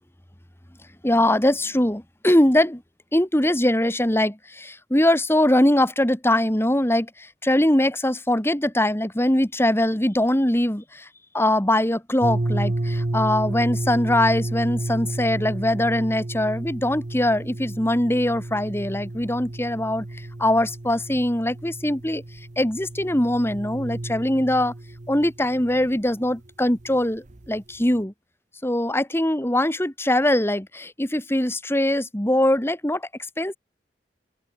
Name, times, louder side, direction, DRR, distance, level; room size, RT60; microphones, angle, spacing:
voice 1, 1.0-2.8 3.1-11.1 11.3-20.1 20.4-22.2 22.6-24.7 25.1-28.1 28.6-33.1 33.4-33.6, left 1 dB, 15° left, 2.0 m, -22 dB
sound 1, 12.2-26.5 26.7-27.0 27.3-27.6 28.0-28.1, right 1 dB, 45° right, 0.9 m, -31 dB
open air
head